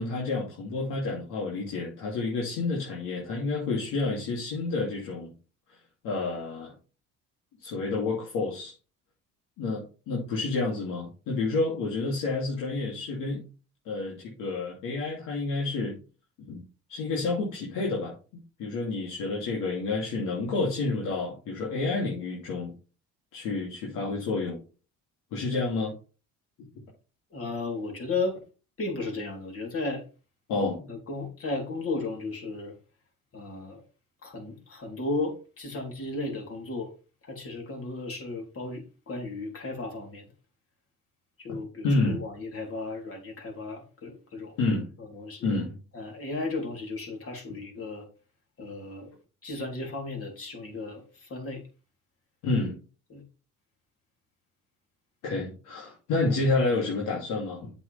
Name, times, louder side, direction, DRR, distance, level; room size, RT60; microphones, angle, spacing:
voice 1, 0.0-5.3 5.7-5.8 6.0-6.7 7.6-8.7 9.6-13.4 13.8-16.0 16.5-16.6 16.9-18.1 18.6-22.7 23.3-24.6 25.3-25.9 30.5-30.8 41.8-42.2 44.6-44.9 45.4-45.8 52.4-52.8 55.2-57.7, left 3 dB, 80° left, -3 dB, 3.0 m, -29 dB
voice 2, 27.3-28.4 28.8-30.0 30.9-32.7 33.3-33.8 34.2-36.9 37.2-40.3 41.4-44.6 45.0-45.4 45.9-48.1 48.6-49.1 49.4-51.6 53.1-53.2, left 3 dB, 45° left, 1 dB, 3.7 m, -34 dB
7.9 x 7.2 x 3.5 m, 0.34 s
cardioid pair, 90°, 31 cm